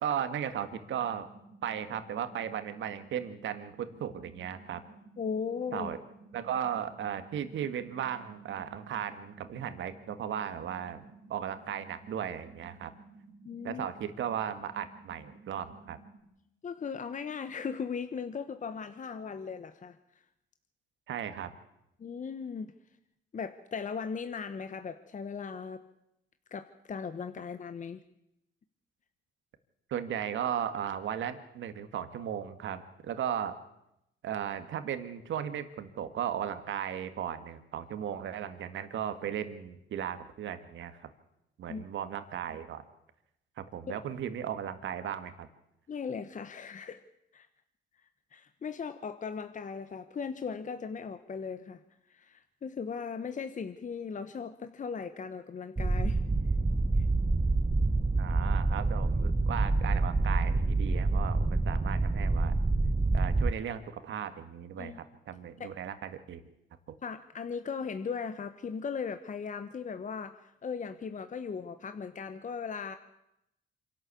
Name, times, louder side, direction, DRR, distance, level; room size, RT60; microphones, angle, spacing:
voice 1, 0.0-1.3 1.6-4.8 5.7-6.0 6.3-11.0 11.3-12.9 13.6-16.0 21.1-21.5 29.9-33.6 34.2-41.1 41.6-42.8 43.6-45.5 58.2-62.5 63.1-66.4, right 9 dB, 70° right, 10 dB, 1.9 m, -36 dB
sound 1, 0.6-16.2, right 3 dB, 40° right, 2.7 m, -55 dB
voice 2, 5.2-5.9 13.4-13.9 16.6-20.2 22.0-22.7 23.3-25.8 26.5-28.0 41.7-41.8 43.9-44.0 45.9-47.0 47.3-47.5 48.3-51.8 52.1-56.2 57.0-57.1 64.8-65.0 65.6-65.7 67.0-73.0, left 6 dB, 40° left, 9 dB, 1.2 m, -38 dB
sound 2, 55.8-63.5, right 3 dB, 15° right, 0.7 m, -27 dB
26.0 x 12.5 x 8.4 m, 0.85 s
cardioid pair, 90°, 20 cm